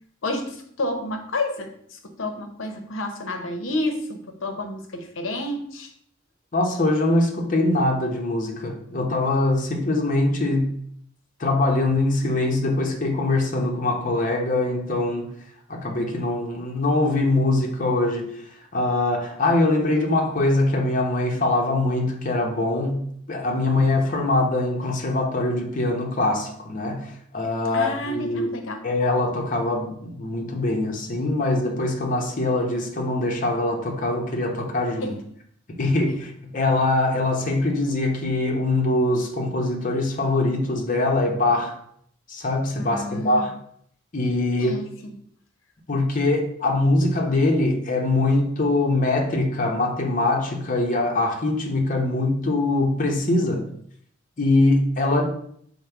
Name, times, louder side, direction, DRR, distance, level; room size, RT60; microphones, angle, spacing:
voice 1, 0.2-5.9 27.7-28.8 35.0-35.1 42.7-43.5 44.6-45.1, left 1 dB, 85° left, 5 dB, 0.7 m, -30 dB
voice 2, 6.5-10.7 11.4-15.3 15.7-18.3 18.7-23.0 23.3-28.5 28.8-35.1 35.8-41.7 42.3-43.6 44.1-44.8 45.9-53.7 54.4-55.2, left 2 dB, 40° left, 1 dB, 0.8 m, -23 dB
5.1 x 2.1 x 4.4 m, 0.65 s
head